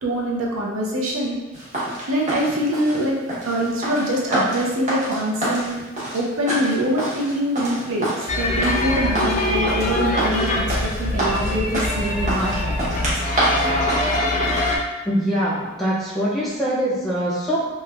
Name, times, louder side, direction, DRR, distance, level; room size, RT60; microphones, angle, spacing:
voice 1, 0.0-1.4 2.1-3.2 3.4-5.8 6.1-8.1 8.4-13.1, right 1 dB, 75° right, -2 dB, 0.5 m, -24 dB
sound 1, 1.5-14.8, right 1 dB, 35° right, 0.8 m, -27 dB
sound 2, 8.3-14.8, left 2 dB, 35° left, 0.4 m, -23 dB
voice 2, 15.0-17.7, equal, ahead, -9 dB, 0.7 m, -23 dB
3.0 x 2.1 x 2.2 m, 1.1 s
head